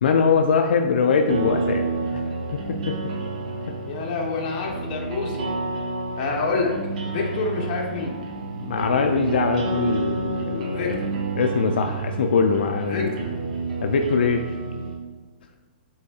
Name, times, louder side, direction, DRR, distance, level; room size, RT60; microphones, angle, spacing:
voice 1, 0.0-1.8 2.1-2.2 2.7-2.9 8.6-11.0 11.4-13.1 13.8-14.6, left 5 dB, 80° left, 4 dB, 0.3 m, -22 dB
sound 1, 1.3-14.9, right 3 dB, 55° right, 1.0 m, -29 dB
voice 2, 3.9-5.5 6.2-6.7 7.0-8.2 10.6-11.1 12.9-13.2, left 4 dB, 40° left, 0 dB, 0.9 m, -27 dB
5.3 x 3.5 x 2.3 m, 1.3 s
hypercardioid pair, 150°, 5 cm